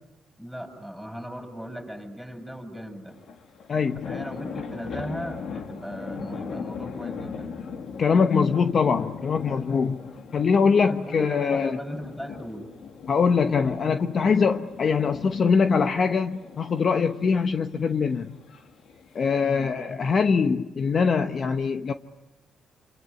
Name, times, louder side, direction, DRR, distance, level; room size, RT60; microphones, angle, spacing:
voice 1, 0.4-3.2 4.1-7.6 10.8-12.7 19.4-19.7, equal, ahead, 7.6 m, -37 dB
sound 1, 3.1-19.4, left 6 dB, 65° left, 2.3 m, -40 dB
voice 2, 3.7-4.1 8.0-10.0 10.3-11.8 13.1-18.4 19.1-21.9, left 5 dB, 45° left, 1.0 m, -23 dB
27.0 x 26.5 x 8.4 m
cardioid pair, 90°, 0 cm